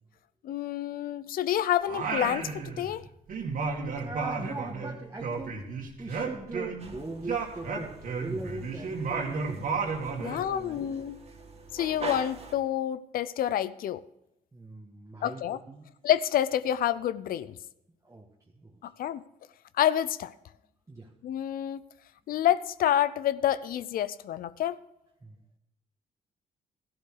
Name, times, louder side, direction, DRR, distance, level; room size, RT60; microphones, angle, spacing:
voice 1, 0.4-3.0 10.2-11.2 11.7-14.0 15.2-15.6 16.0-17.6 18.8-19.2 19.8-20.3 21.2-21.8 22.3-24.8, left 11 dB, 70° left, 0.6 m, -28 dB
Singing, 1.9-3.0 3.3-6.9 7.2-10.4, right 4 dB, 65° right, 2.3 m, -33 dB
voice 2, 4.0-5.6 6.0-9.7 10.1-10.9 14.5-15.9 18.1-18.3 20.9-21.1 25.2-25.3, right 2 dB, 20° right, 1.5 m, -40 dB
sound 1, 6.8-12.6, right 3 dB, 40° right, 2.3 m, -44 dB
13.5 x 11.5 x 4.7 m
supercardioid pair, 70°, 15 cm